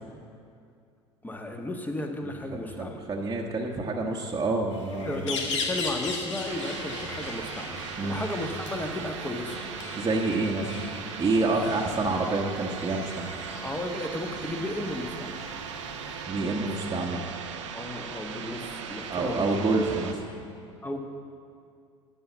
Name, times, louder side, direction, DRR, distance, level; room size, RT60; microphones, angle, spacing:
voice 1, 1.2-3.0 5.0-9.6 11.4-12.2 13.6-15.3 16.4-16.7 17.7-19.6 20.8-21.0, left 1 dB, 10° left, 4 dB, 1.4 m, -34 dB
voice 2, 2.2-5.3 8.0-8.3 9.9-10.7 11.2-13.3 16.3-17.3 19.1-20.2, right 3 dB, 25° right, -2 dB, 1.2 m, -28 dB
sound 1, 4.7-16.3, left 3 dB, 80° left, 1.4 m, -39 dB
sound 2, 6.5-20.1, right 6 dB, 80° right, 0.9 m, -38 dB
11.5 x 7.9 x 7.2 m, 2.3 s
hypercardioid pair, 70°, 15 cm